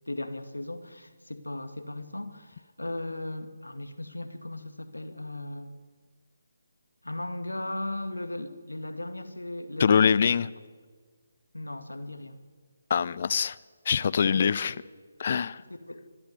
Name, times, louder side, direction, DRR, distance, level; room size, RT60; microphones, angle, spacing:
voice 1, 0.1-5.8 7.0-10.2 11.5-12.4 14.2-14.5 15.9-16.0, left 1 dB, 85° left, 8 dB, 2.1 m, -37 dB
voice 2, 9.8-10.5 12.9-13.6 13.9-14.7 15.2-15.6, left 7 dB, 45° left, 19 dB, 0.7 m, -23 dB
25.0 x 12.0 x 9.5 m, 1.5 s
figure-of-eight pair, 145°, 0 cm